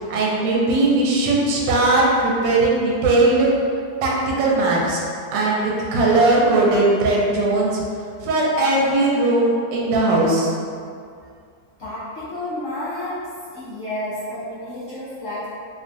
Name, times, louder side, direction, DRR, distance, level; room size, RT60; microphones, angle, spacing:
voice 1, 0.1-3.5 4.0-5.0 5.3-7.8 8.2-10.5, right 2 dB, 80° right, -3 dB, 1.3 m, -18 dB
voice 2, 11.8-13.2 13.5-15.5, left 1 dB, 60° left, -11 dB, 0.8 m, -30 dB
3.2 x 2.4 x 2.5 m, 2.3 s
omnidirectional pair, 2.0 m